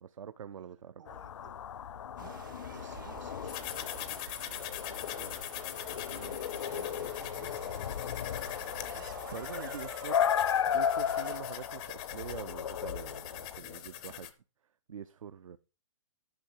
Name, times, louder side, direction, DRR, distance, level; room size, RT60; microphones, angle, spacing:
voice 1, 0.0-1.0 5.2-5.4 6.1-6.4 9.3-10.3 10.7-14.3 14.9-15.6, right 8 dB, 80° right, 0.7 m, -45 dB
voice 2, 1.0-1.6 2.2-4.6 5.1-5.8 6.7-9.2 9.7-10.1, right 7 dB, 65° right, 2.4 m, -56 dB
sound 1, 1.1-13.6, left 8 dB, 65° left, 0.5 m, -35 dB
sound 2, 2.2-11.4, right 9 dB, 40° right, 0.6 m, -50 dB
sound 3, 3.5-14.3, left 12 dB, 10° left, 0.4 m, -43 dB
12.0 x 5.7 x 4.6 m
hypercardioid pair, 175°, 17 cm